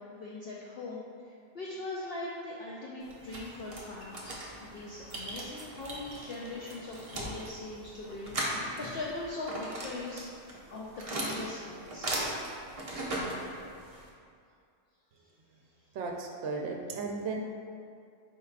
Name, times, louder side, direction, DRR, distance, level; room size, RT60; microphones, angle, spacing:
voice 1, 0.0-12.1, left 2 dB, 65° left, -5 dB, 0.6 m, -41 dB
sound 1, 3.0-14.1, right 1 dB, 45° right, 0.4 m, -38 dB
voice 2, 15.9-17.4, right 4 dB, 70° right, 0 dB, 0.8 m, -35 dB
4.5 x 4.5 x 2.4 m, 2.3 s
omnidirectional pair, 1.4 m